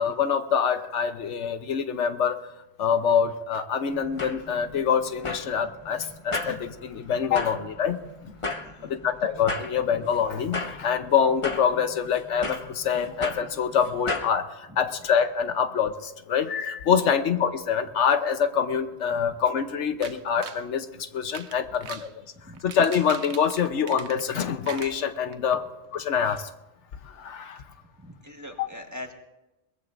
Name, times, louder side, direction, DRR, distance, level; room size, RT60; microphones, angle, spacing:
voice 1, 0.0-2.4 2.8-8.0 8.3-8.4 8.8-22.1 22.6-25.6 25.9-26.5 27.0-27.6 28.6-28.7, left 7 dB, 85° left, 9 dB, 1.2 m, -25 dB
sound 1, 3.9-14.3, left 2 dB, 30° left, 0.8 m, -36 dB
voice 2, 8.5-8.9 14.7-14.9 17.0-17.1 19.1-19.2 22.3-22.6 28.0-29.1, left 1 dB, 15° right, 2 dB, 1.4 m, -43 dB
sound 2, 20.0-20.6 21.2-22.1 22.5-24.4 24.6-25.6 25.9-26.0 26.4-26.5, right 7 dB, 70° right, 1.1 m, -41 dB
22.0 x 20.0 x 2.5 m, 1.0 s
omnidirectional pair, 1.2 m